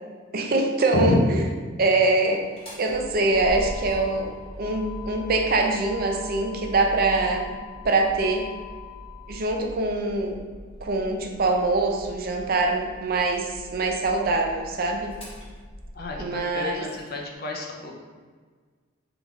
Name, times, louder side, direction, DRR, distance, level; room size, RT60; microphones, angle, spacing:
voice 1, 0.3-1.2 1.8-2.5 2.8-4.3 4.6-7.5 7.8-8.5 9.3-10.4 10.8-15.1 16.2-16.8, right 2 dB, 50° right, 3 dB, 0.5 m, -24 dB
Motor vehicle (road), 2.4-17.1, left 2 dB, 30° left, 1.1 m, -41 dB
voice 2, 15.9-17.9, left 2 dB, 50° left, 0 dB, 0.7 m, -28 dB
3.9 x 3.4 x 3.5 m, 1.5 s
head